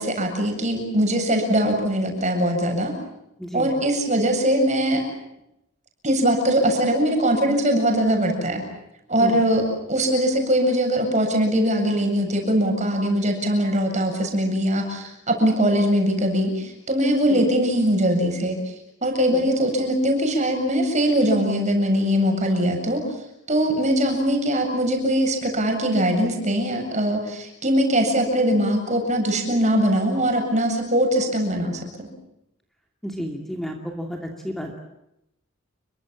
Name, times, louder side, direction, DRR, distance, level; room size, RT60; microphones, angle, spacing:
voice 1, 0.0-2.9 3.5-5.0 6.0-8.6 9.1-18.6 19.0-23.0 23.5-32.1, equal, 35° right, 4 dB, 7.8 m, -21 dB
voice 2, 3.4-3.7 9.2-9.4 17.3-17.5 19.3-19.5 33.0-34.8, equal, ahead, 2 dB, 2.7 m, -32 dB
30.0 x 24.0 x 7.5 m, 0.86 s
head